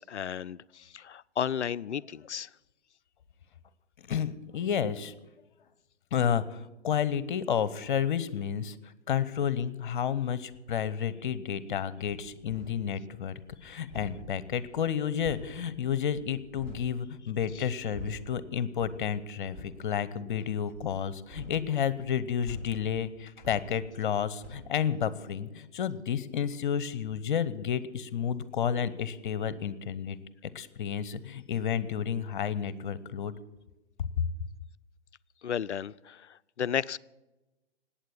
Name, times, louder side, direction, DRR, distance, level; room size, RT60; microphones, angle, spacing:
voice 1, 0.0-2.5 17.6-17.7 35.4-37.0, left 8 dB, 75° left, 16 dB, 0.5 m, -33 dB
voice 2, 4.0-5.1 6.1-30.2 30.4-33.3 34.0-34.1, left 8 dB, 45° left, 17 dB, 0.9 m, -31 dB
sound 1, 12.0-12.9 13.3-16.9 17.3-18.4 18.8-19.1 19.4-19.8 20.7-24.1 24.4-24.7, equal, 35° right, 5.7 m, -47 dB
19.0 x 8.9 x 7.1 m, 1.1 s
figure-of-eight pair, 125°, 35 cm